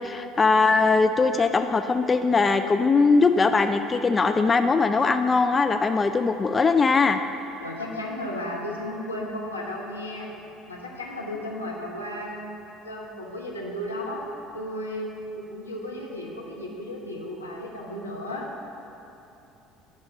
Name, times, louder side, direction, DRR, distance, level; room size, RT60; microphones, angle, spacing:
voice 1, 0.0-7.2, left 4 dB, 25° left, 8 dB, 0.3 m, -21 dB
voice 2, 7.6-10.3 10.7-14.2 14.5-15.1 15.3-18.5, left 1 dB, 85° left, -2 dB, 0.9 m, -34 dB
9.6 x 3.7 x 6.4 m, 2.9 s
figure-of-eight pair, 60°, 0 cm